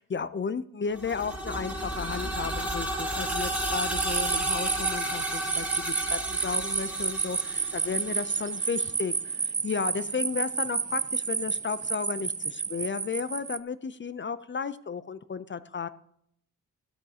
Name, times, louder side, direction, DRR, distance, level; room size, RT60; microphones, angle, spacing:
voice 1, 0.0-15.9, left 5 dB, 35° left, 14 dB, 0.5 m, -34 dB
sound 1, 0.9-8.7, right 1 dB, 5° right, 2.3 m, -33 dB
sound 2, 3.3-13.6, right 6 dB, 25° right, 0.4 m, -31 dB
13.0 x 7.9 x 2.8 m, 0.70 s
cardioid pair, 85°, 33 cm